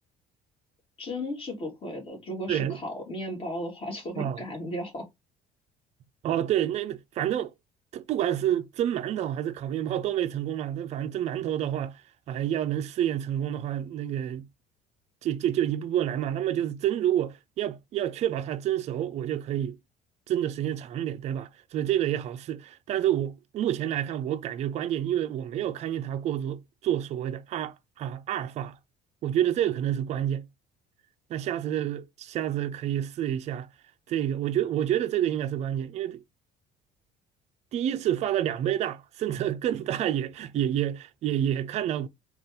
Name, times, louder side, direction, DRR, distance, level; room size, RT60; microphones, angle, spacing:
voice 1, 1.0-5.1, left 1 dB, 35° left, 1.9 m, -35 dB
voice 2, 6.2-7.5 7.9-12.0 12.3-14.5 15.2-19.8 20.3-28.8 29.2-30.5 31.3-33.7 34.1-36.2 37.7-42.1, right 11 dB, 40° right, 0.4 m, -28 dB
4.1 x 2.4 x 3.5 m
cardioid pair, 160°, 18 cm